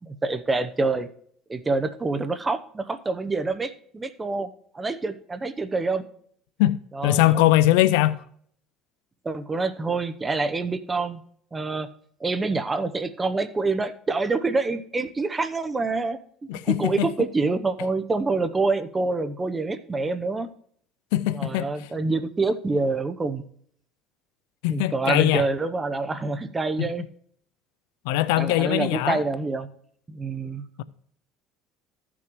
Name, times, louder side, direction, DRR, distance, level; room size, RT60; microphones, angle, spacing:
voice 1, 0.0-1.1 1.5-4.5 4.7-6.0 6.9-7.5 9.2-11.2 11.5-11.9 12.2-16.2 16.5-20.5 21.3-23.4 24.7-27.0 28.4-29.7 30.1-30.6, right 3 dB, 20° right, 0.8 m, -26 dB
voice 2, 7.0-8.2 16.5-17.1 21.1-21.7 24.6-25.5 28.1-29.2 30.8-30.9, left 15 dB, 85° left, 0.4 m, -21 dB
14.5 x 6.1 x 3.1 m
supercardioid pair, 95°, 0 cm